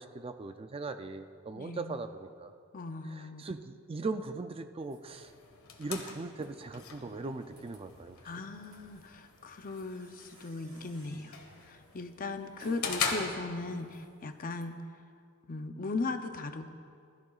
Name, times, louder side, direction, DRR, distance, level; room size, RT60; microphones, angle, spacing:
voice 1, 0.0-2.5 3.0-5.3 5.8-8.2, right 3 dB, 25° right, 8 dB, 0.4 m, -39 dB
voice 2, 1.5-2.0 2.7-3.5 8.2-11.4 11.6-14.8 15.5-16.7, left 3 dB, 40° left, 8 dB, 0.6 m, -38 dB
sound 1, 4.8-14.6, right 1 dB, 55° right, 2.8 m, -59 dB
sound 2, 5.0-14.0, left 5 dB, 90° left, 1.4 m, -41 dB
20.0 x 13.0 x 2.4 m, 2.3 s
head